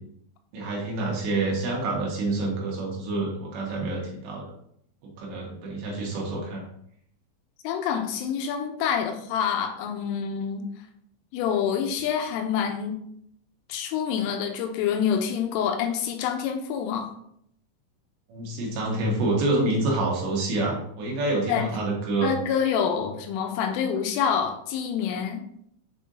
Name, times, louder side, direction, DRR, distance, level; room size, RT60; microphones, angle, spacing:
voice 1, 0.5-4.5 5.0-6.6 18.3-22.3, right 2 dB, 70° right, -2 dB, 3.5 m, -27 dB
voice 2, 7.6-10.7 11.3-13.0 13.7-17.1 21.5-21.7 22.2-25.4, left 7 dB, 85° left, 5 dB, 3.2 m, -27 dB
7.5 x 5.5 x 2.7 m, 0.69 s
omnidirectional pair, 5.8 m